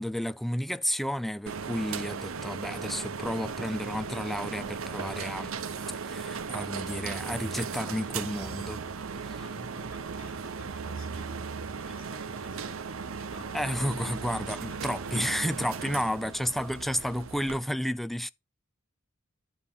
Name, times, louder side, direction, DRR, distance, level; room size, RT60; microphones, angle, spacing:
voice 1, 0.0-5.5 6.0-8.8 9.2-9.4 13.5-18.3, equal, ahead, 0.4 m, -32 dB
sound 1, 1.5-17.6, right 5 dB, 85° right, 0.8 m, -37 dB
voice 2, 9.3-13.7 14.5-15.1 15.9-16.1, left 2 dB, 75° left, 3.6 m, -53 dB
11.0 x 4.2 x 5.5 m
head